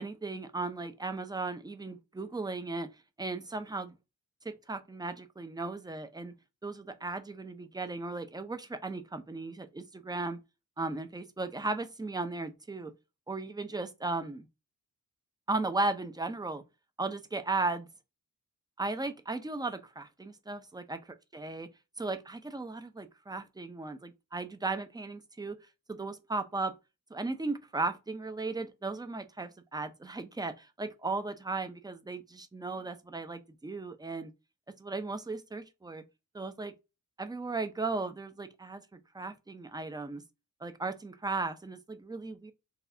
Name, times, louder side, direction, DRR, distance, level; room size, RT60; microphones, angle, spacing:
voice 1, 0.0-2.9 3.2-3.9 4.4-6.3 6.6-10.4 10.8-12.9 13.3-14.5 15.5-16.6 17.0-17.9 18.8-21.0 21.3-21.7 22.0-25.6 25.9-26.7 27.1-34.3 34.8-36.0 36.3-36.7 37.2-40.2 40.6-42.5, right 3 dB, 10° right, 0.4 m, -36 dB
4.1 x 2.3 x 2.7 m
wide cardioid pair, 90°, 34 cm